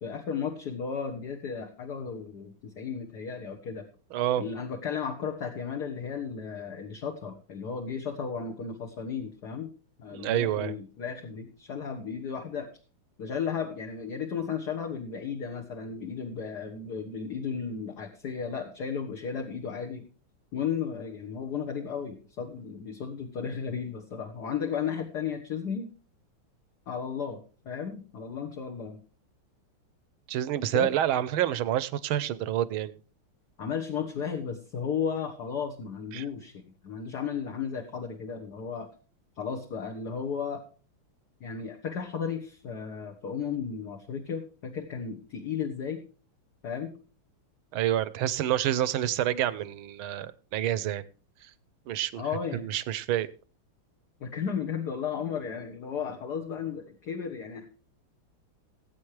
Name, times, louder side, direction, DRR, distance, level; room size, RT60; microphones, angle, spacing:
voice 1, 0.0-3.9 4.4-9.7 10.0-12.7 13.2-20.0 20.5-25.9 26.9-29.0 30.7-30.9 33.6-38.9 39.3-40.6 41.4-46.0 46.6-47.0 52.2-52.7 54.2-57.7, left 6 dB, 50° left, 4 dB, 1.7 m, -34 dB
voice 2, 4.1-4.4 10.1-10.7 30.3-33.0 36.1-36.2 47.7-51.1 51.4-51.5 51.9-52.2 52.5-53.3, right 12 dB, 75° right, 17 dB, 1.6 m, -28 dB
19.0 x 8.5 x 3.2 m, 0.38 s
omnidirectional pair, 2.4 m